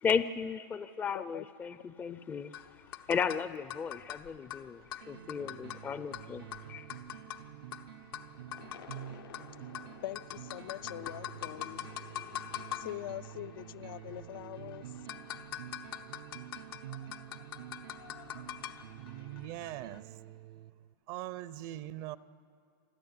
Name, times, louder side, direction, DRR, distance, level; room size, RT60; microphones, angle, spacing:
voice 1, 0.0-6.9, left 6 dB, 15° left, 0.5 m, -35 dB
voice 2, 1.1-1.5 10.0-11.9 12.8-14.9, left 14 dB, 70° left, 0.5 m, -43 dB
sound 1, 2.5-20.0, left 11 dB, 85° left, 1.1 m, -45 dB
sound 2, 5.0-20.9, right 12 dB, 85° right, 0.7 m, -49 dB
voice 3, 18.9-20.6 21.1-22.2, right 14 dB, 50° right, 0.6 m, -42 dB
27.5 x 11.0 x 9.5 m
supercardioid pair, 145°, 12 cm